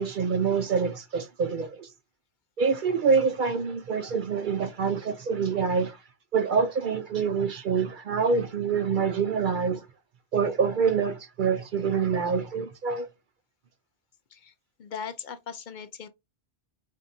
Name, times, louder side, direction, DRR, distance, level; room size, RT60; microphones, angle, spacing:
voice 1, 0.0-1.9 2.6-6.0 6.3-9.9 10.3-13.1, right 5 dB, 60° right, 0.6 m, -26 dB
voice 2, 14.8-16.1, left 7 dB, 55° left, 0.6 m, -39 dB
5.4 x 3.6 x 2.5 m
omnidirectional pair, 1.1 m